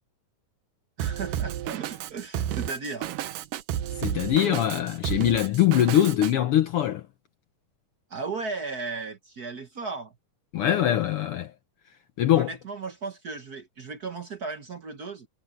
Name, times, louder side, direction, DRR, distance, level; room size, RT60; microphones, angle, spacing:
voice 1, 1.0-3.1 8.1-10.1 12.3-15.3, right 4 dB, 65° right, 0.9 m, -35 dB
Drum kit, 1.0-6.3, right 11 dB, 90° right, 2.7 m, -32 dB
voice 2, 4.0-7.0 10.5-11.5 12.2-12.5, left 11 dB, 85° left, 1.2 m, -22 dB
omnidirectional pair, 3.7 m